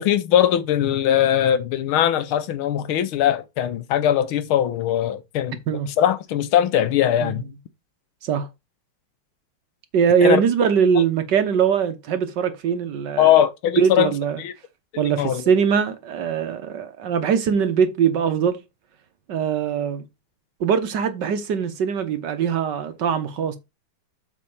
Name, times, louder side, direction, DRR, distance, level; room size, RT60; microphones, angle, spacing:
voice 1, 0.0-5.6 6.0-7.4 10.2-10.4 13.2-14.1 14.4-14.5 14.9-15.4, left 11 dB, 85° left, 1.7 m, -20 dB
voice 2, 9.9-13.3 13.8-14.4 15.0-18.6 19.3-20.1 20.6-23.6, right 7 dB, 60° right, 1.6 m, -21 dB
7.7 x 3.6 x 5.5 m
omnidirectional pair, 2.3 m